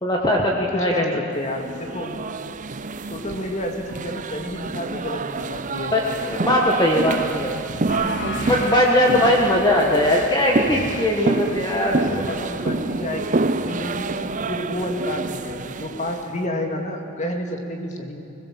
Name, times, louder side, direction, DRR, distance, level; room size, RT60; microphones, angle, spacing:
voice 1, 0.0-1.0 5.9-7.5 8.4-12.0, left 1 dB, 20° left, -1 dB, 1.6 m, -20 dB
voice 2, 0.7-2.2 3.1-5.9 11.7-18.2, left 1 dB, 35° left, 3 dB, 2.3 m, -30 dB
sound 1, 1.6-16.3, right 3 dB, 40° right, 0.7 m, -28 dB
sound 2, 7.9-13.1, left 1 dB, 55° left, 2.2 m, -35 dB
21.0 x 20.5 x 7.7 m, 2.8 s
head